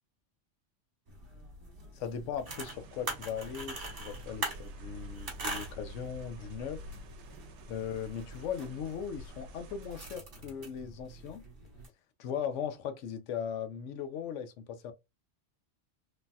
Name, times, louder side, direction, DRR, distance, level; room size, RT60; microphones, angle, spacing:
sound 1, 1.1-11.9, right 2 dB, 50° right, 1.2 m, -43 dB
voice 1, 1.9-6.8 7.7-11.4 12.2-14.9, left 7 dB, 80° left, 0.9 m, -38 dB
sound 2, 2.5-10.2, right 1 dB, 70° right, 0.9 m, -52 dB
3.1 x 2.6 x 2.2 m
omnidirectional pair, 1.3 m